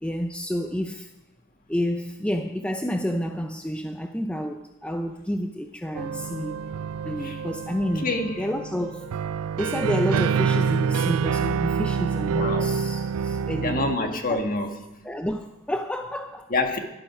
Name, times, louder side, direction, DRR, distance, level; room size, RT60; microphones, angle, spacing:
voice 1, 0.0-1.1 1.7-6.6 7.0-8.1 8.4-9.1 9.5-14.4 15.0-16.5, equal, 5° left, 0.5 m, -30 dB
sound 1, 5.9-14.0, right 6 dB, 75° right, 0.4 m, -27 dB
voice 2, 7.9-8.5 12.4-12.7 13.6-14.9 16.5-16.8, left 2 dB, 40° left, 1.6 m, -27 dB
11.5 x 11.0 x 6.1 m
head